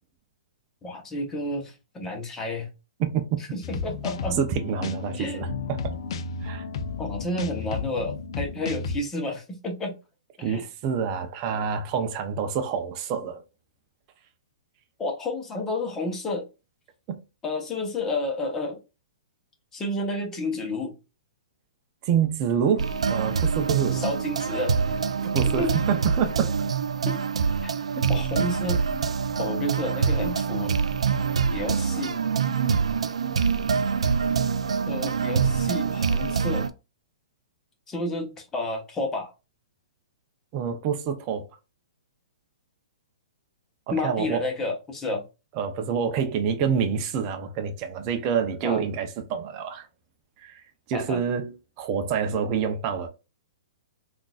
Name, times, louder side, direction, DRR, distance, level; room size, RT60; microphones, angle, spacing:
voice 1, 0.8-2.7 3.5-4.4 5.2-5.4 7.0-10.0 10.4-10.6 15.0-16.5 17.4-18.8 19.7-20.9 23.9-24.7 25.5-25.8 27.0-27.2 27.6-27.7 28.1-28.8 29.4-30.7 31.5-32.2 34.9-36.7 37.9-39.3 43.9-45.2 48.6-48.8 50.9-51.2, left 2 dB, 15° left, 1.0 m, -30 dB
sound 1, 3.6-9.0, left 4 dB, 60° left, 0.5 m, -33 dB
voice 2, 4.4-5.8 6.4-6.6 10.4-13.4 17.1-17.2 22.0-24.0 25.2-26.5 28.0-28.1 40.5-41.5 43.9-44.4 45.6-49.9 50.4-50.6 50.9-53.1, right 7 dB, 35° right, 0.5 m, -27 dB
sound 2, 22.8-36.7, right 6 dB, 90° right, 0.4 m, -25 dB
3.7 x 2.5 x 2.4 m
hypercardioid pair, 140°, 3 cm